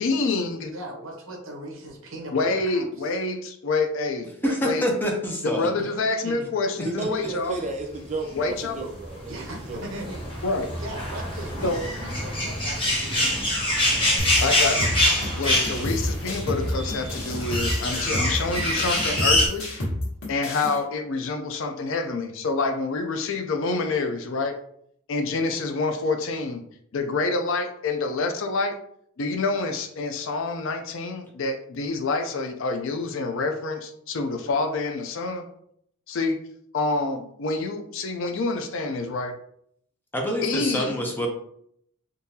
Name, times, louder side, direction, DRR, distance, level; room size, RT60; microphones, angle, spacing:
voice 1, 0.0-0.7 2.3-4.3 4.6-4.9 5.4-7.5 8.4-8.8 10.4-10.7 11.6-11.8 14.4-14.9 15.4-19.7 20.3-24.6 25.1-26.6 26.9-28.7 29.2-35.5 36.1-36.4 36.7-39.3 40.4-40.9, left 3 dB, 60° left, 6 dB, 0.5 m, -27 dB
voice 2, 0.7-3.2 4.4-4.5 5.9-6.5 9.3-10.2 10.7-13.4 21.5-21.6, right 1 dB, 65° right, 0 dB, 1.0 m, -39 dB
voice 3, 4.4-5.7 6.8-7.3 40.1-41.3, equal, 10° left, 0 dB, 0.6 m, -27 dB
voice 4, 6.8-10.1, right 2 dB, 35° right, 3 dB, 0.4 m, -33 dB
sound 1, 8.4-19.5, left 1 dB, 25° left, 1.1 m, -25 dB
sound 2, 14.2-20.8, left 1 dB, 90° left, 1.4 m, -30 dB
3.7 x 2.7 x 2.7 m, 0.69 s
head